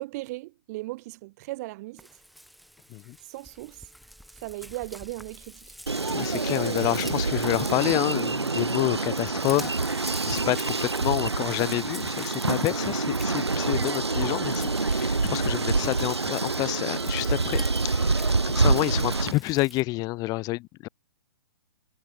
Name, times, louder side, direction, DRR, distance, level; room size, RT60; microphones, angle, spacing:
voice 1, 0.0-2.1 3.2-3.9 4.4-5.8, right 20 dB, 40° right, 2.3 m, -37 dB
Frying (food), 2.0-19.8, equal, ahead, 6.1 m, -46 dB
sound 1, 5.9-19.3, right 3 dB, 85° right, 1.2 m, -26 dB
voice 2, 6.1-20.9, left 21 dB, 30° left, 3.0 m, -29 dB
figure-of-eight pair, 120°, 14 cm